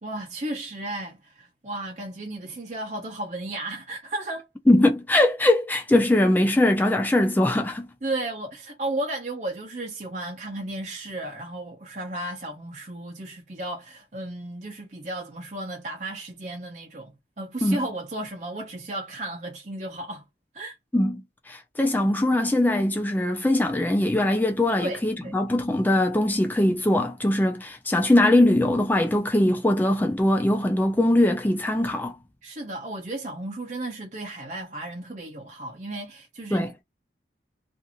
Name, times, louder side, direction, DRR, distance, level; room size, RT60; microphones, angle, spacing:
voice 1, 0.0-4.5 8.0-20.2 20.5-20.8 24.8-25.3 32.4-36.8, right 1 dB, 40° right, 0.7 m, -34 dB
voice 2, 4.7-7.9 17.6-17.8 20.9-32.2 36.5-36.7, left 1 dB, 10° left, 0.3 m, -21 dB
2.6 x 2.5 x 2.8 m
head